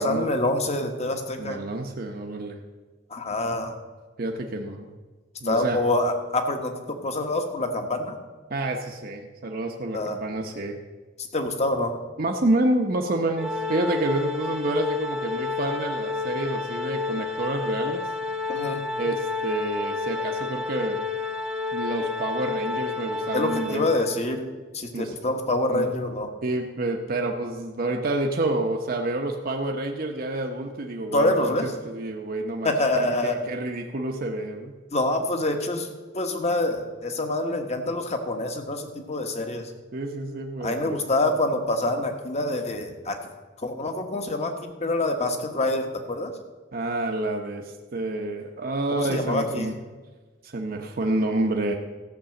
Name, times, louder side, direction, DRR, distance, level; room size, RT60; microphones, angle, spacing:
voice 1, 0.0-1.6 3.1-3.8 5.4-8.2 9.9-10.2 11.3-12.0 18.5-18.8 23.3-24.4 24.7-26.3 31.1-31.7 32.6-33.4 34.9-35.9 36.1-39.7 40.6-43.2 43.6-46.3 48.9-49.7, left 2 dB, 35° left, 5 dB, 1.2 m, -26 dB
voice 2, 1.4-2.6 4.2-4.9 5.4-5.8 8.5-10.8 12.2-18.0 19.0-21.0 21.7-23.9 24.9-25.1 25.7-25.9 26.4-34.7 39.9-41.0 46.7-49.7 50.4-51.7, right 2 dB, 50° right, 2 dB, 0.8 m, -28 dB
Organ, 13.4-24.3, left 4 dB, 5° right, 1.0 m, -30 dB
14.0 x 6.1 x 7.6 m, 1.3 s
head